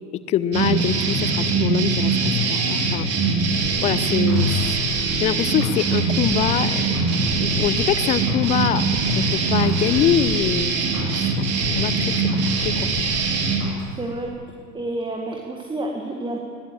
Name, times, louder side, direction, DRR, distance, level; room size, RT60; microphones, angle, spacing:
voice 1, 0.1-3.1 3.8-6.8 7.4-8.8 9.2-11.2 11.7-12.9, left 10 dB, 15° left, 17 dB, 0.4 m, -24 dB
sound 1, 0.5-13.7, right 3 dB, 30° right, 4.0 m, -22 dB
sound 2, 3.6-6.6 6.9-8.6 8.9-11.9 12.3-13.9 14.2-14.3, right 1 dB, 65° right, 7.6 m, -37 dB
voice 2, 14.0-14.3 14.7-16.4, right 2 dB, 10° right, 1 dB, 2.0 m, -29 dB
20.5 x 17.0 x 7.8 m, 2.3 s
figure-of-eight pair, 90°, 47 cm